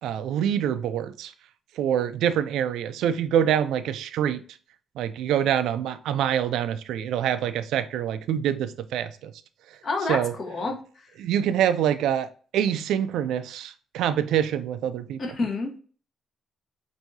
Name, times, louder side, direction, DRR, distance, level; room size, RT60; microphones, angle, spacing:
voice 1, 0.0-1.3 1.8-4.4 5.0-9.3 10.1-10.3 11.2-15.2, right 9 dB, 85° right, 0.4 m, -25 dB
voice 2, 9.8-11.1 15.2-15.7, left 3 dB, 50° left, 1.2 m, -29 dB
5.9 x 2.7 x 2.6 m
cardioid pair, 90°, 0 cm